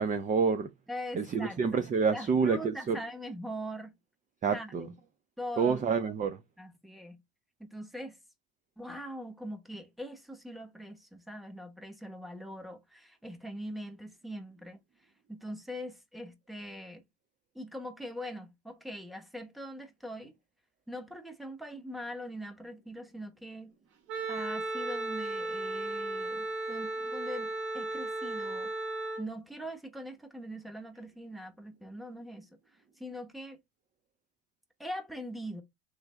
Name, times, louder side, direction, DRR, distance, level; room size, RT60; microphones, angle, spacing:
voice 1, 0.0-0.7 1.1-3.0 4.4-4.9 5.6-6.4, right 5 dB, 25° right, 0.4 m, -28 dB
voice 2, 0.9-3.9 4.5-4.9 5.4-5.8 6.6-7.2 7.6-8.2 8.8-14.8 15.3-17.0 17.5-20.3 20.9-23.8 24.3-28.7 29.2-32.5 33.0-33.6 34.8-35.6, equal, ahead, 1.0 m, -42 dB
Wind instrument woodwind instrument, 24.1-29.3, right 2 dB, 85° right, 1.4 m, -35 dB
3.3 x 3.3 x 3.2 m
supercardioid pair, 90°, 33 cm